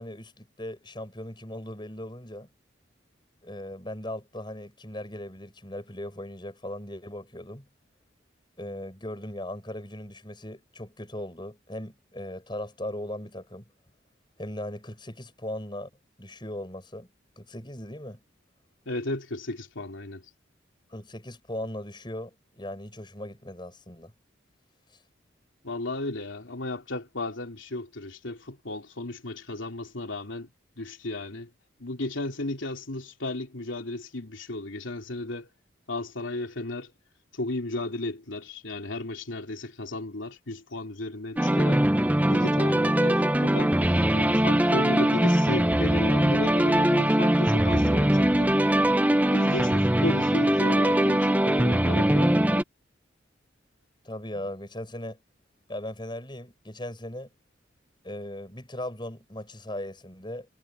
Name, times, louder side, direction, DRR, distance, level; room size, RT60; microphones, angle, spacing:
voice 1, 0.0-2.5 3.4-7.7 8.6-13.6 14.4-15.9 16.2-17.1 17.4-18.2 20.9-24.1 54.0-55.2 55.7-57.3 58.0-60.5, left 1 dB, 25° left, 7.7 m, -38 dB
voice 2, 18.8-20.3 25.6-30.5 30.8-31.5 31.8-35.5 35.9-36.9 37.3-41.8 42.3-43.7 44.1-48.5 49.1-52.4, left 2 dB, 85° left, 3.1 m, -34 dB
sound 1, 41.4-52.6, right 1 dB, 10° right, 0.7 m, -22 dB
head